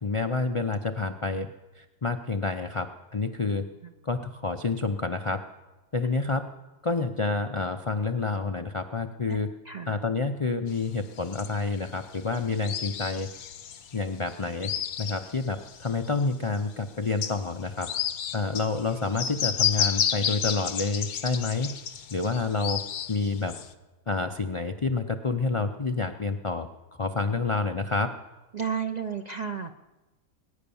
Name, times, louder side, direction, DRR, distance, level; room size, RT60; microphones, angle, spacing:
voice 1, 0.0-1.5 1.8-2.9 3.1-3.6 4.0-5.4 5.9-6.5 6.8-9.5 9.9-13.3 13.9-14.7 15.0-17.9 18.3-21.7 22.1-22.8 23.1-23.5 24.1-26.7 27.0-28.1, left 3 dB, 45° left, 7 dB, 0.4 m, -28 dB
voice 2, 9.6-10.0 28.5-29.7, right 7 dB, 45° right, 6 dB, 0.5 m, -32 dB
sound 1, 10.8-16.2 16.6-16.7 17.1-23.7, left 8 dB, 75° left, 1.3 m, -31 dB
20.5 x 10.0 x 7.0 m, 1.1 s
omnidirectional pair, 1.5 m